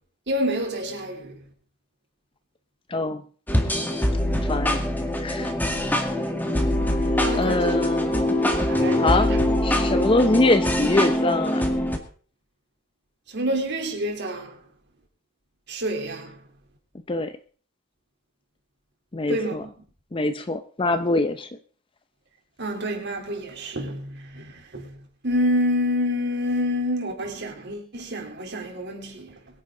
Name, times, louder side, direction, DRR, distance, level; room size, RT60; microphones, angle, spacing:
voice 1, 0.3-1.4 6.1-6.5 7.2-7.8 8.0-8.4 8.7-9.4 13.3-14.6 15.7-16.4 19.3-19.7 22.6-29.4, equal, 55° right, 3.5 m, -28 dB
voice 2, 2.9-3.2 4.4-4.8 5.2-5.5 7.4-8.3 9.0-9.3 9.6-11.6 17.1-17.3 19.1-19.6 20.1-21.5, left 2 dB, 25° left, 0.6 m, -24 dB
sound 1, 3.5-12.0, left 1 dB, 10° left, 1.9 m, -23 dB
22.5 x 9.9 x 3.8 m
head